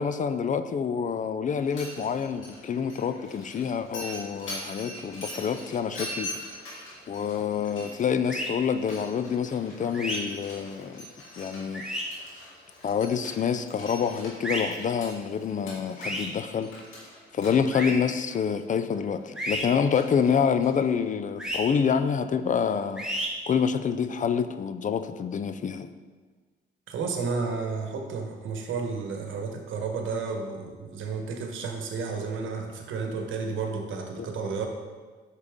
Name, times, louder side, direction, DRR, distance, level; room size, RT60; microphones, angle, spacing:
voice 1, 0.0-6.3 7.1-11.1 11.4-11.8 12.8-16.7 17.3-25.9, left 7 dB, 40° left, 11 dB, 0.4 m, -27 dB
Mechanisms, 1.5-21.1, left 1 dB, 80° left, 2.5 m, -43 dB
sound 1, 8.3-8.5 9.9-10.2 11.7-12.0 14.4-14.6 16.0-16.3 17.7-17.9 19.4-19.6 21.4-21.6 23.0-23.3, equal, 5° right, 1.8 m, -31 dB
voice 2, 26.9-34.7, right 4 dB, 75° right, 3 dB, 1.2 m, -32 dB
8.3 x 6.6 x 3.6 m, 1.4 s
cardioid pair, 90°, 20 cm